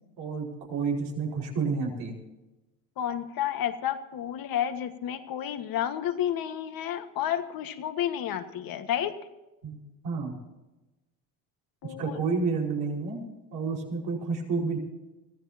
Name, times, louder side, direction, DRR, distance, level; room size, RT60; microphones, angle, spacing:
voice 1, 0.2-2.2 9.6-9.8 10.0-10.3 11.8-13.2 13.5-14.8, right 4 dB, 75° right, -1 dB, 5.3 m, -30 dB
voice 2, 3.0-9.2 11.8-12.2, left 10 dB, 65° left, 8 dB, 1.7 m, -31 dB
24.5 x 16.0 x 2.9 m, 1.0 s
supercardioid pair, 80°, 38 cm